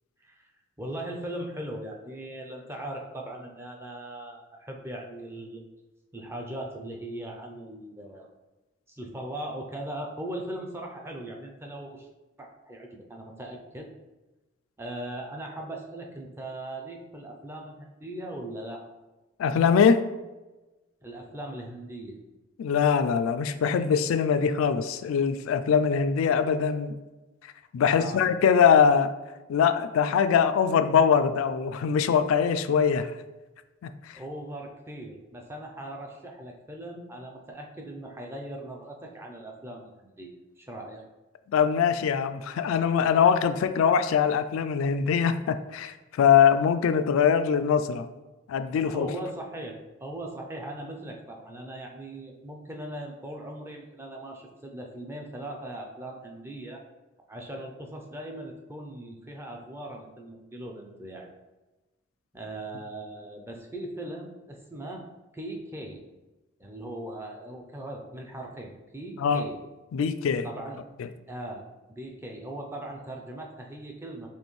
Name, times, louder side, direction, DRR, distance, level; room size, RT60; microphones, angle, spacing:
voice 1, 0.8-5.6 6.1-8.3 8.9-12.1 12.4-13.9 14.8-18.8 21.0-22.2 27.9-28.2 34.1-41.0 48.9-56.8 57.3-61.3 62.3-65.0 65.3-66.0 66.6-69.6 70.4-70.8 71.3-71.6 71.9-74.3, right 1 dB, 10° right, 1 dB, 0.4 m, -39 dB
voice 2, 19.4-20.0 22.6-26.9 27.7-29.1 29.5-33.1 33.8-34.2 41.5-48.1 48.5-49.1 69.2-69.5 69.9-70.5 71.0-71.1, left 7 dB, 85° left, 11 dB, 0.3 m, -22 dB
4.3 x 3.0 x 3.1 m, 1.1 s
head